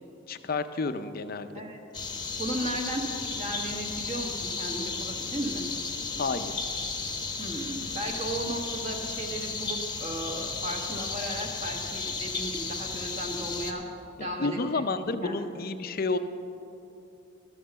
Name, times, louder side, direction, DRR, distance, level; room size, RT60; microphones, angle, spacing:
voice 1, 0.3-1.6 6.2-6.6 14.2-16.2, left 3 dB, 45° left, 10 dB, 0.6 m, -30 dB
sound 1, 1.9-13.7, left 4 dB, 20° left, 0.9 m, -34 dB
voice 2, 2.4-5.6 7.4-13.8 14.2-15.5, right 1 dB, 35° right, 1 dB, 1.4 m, -35 dB
13.0 x 7.5 x 6.9 m, 2.7 s
head